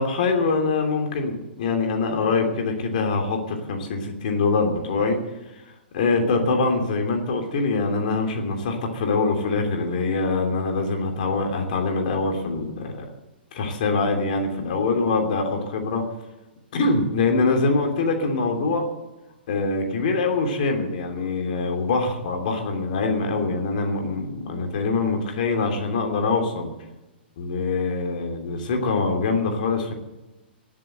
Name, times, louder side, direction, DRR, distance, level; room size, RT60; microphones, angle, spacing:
voice 1, 0.0-5.2 5.6-13.1 13.5-16.0 16.7-18.9 19.5-26.7 27.4-29.9, left 3 dB, 50° left, 3 dB, 3.0 m, -24 dB
21.0 x 7.7 x 7.8 m, 1.0 s
figure-of-eight pair, 110°, 6 cm